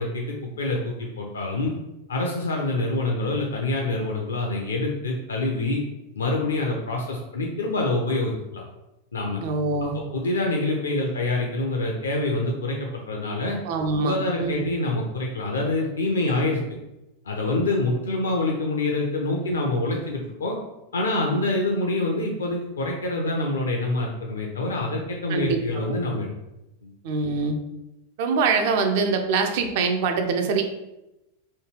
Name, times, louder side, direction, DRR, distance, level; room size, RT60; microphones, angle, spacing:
voice 1, 0.0-1.7 2.1-5.8 6.1-8.3 9.1-9.4 9.8-13.6 14.0-16.6 17.2-20.6 20.9-26.3, left 2 dB, 70° left, 0 dB, 0.5 m, -26 dB
voice 2, 9.4-10.0 13.7-14.7 25.3-26.0 27.0-27.5 28.2-30.6, right 4 dB, 50° right, 5 dB, 0.5 m, -24 dB
3.1 x 2.3 x 3.2 m, 0.94 s
figure-of-eight pair, 90°, 0 cm